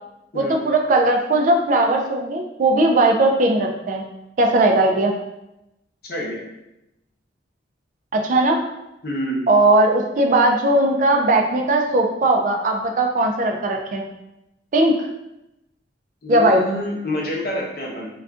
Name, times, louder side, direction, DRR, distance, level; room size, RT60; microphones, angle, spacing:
voice 1, 0.3-4.0 4.4-5.1 8.1-8.6 9.5-14.0 14.7-14.9 16.3-16.6, right 2 dB, 45° right, 2 dB, 0.3 m, -18 dB
voice 2, 6.0-6.4 9.0-9.4 16.2-18.1, left 1 dB, 55° left, -3 dB, 0.7 m, -27 dB
2.4 x 2.2 x 3.5 m, 0.90 s
head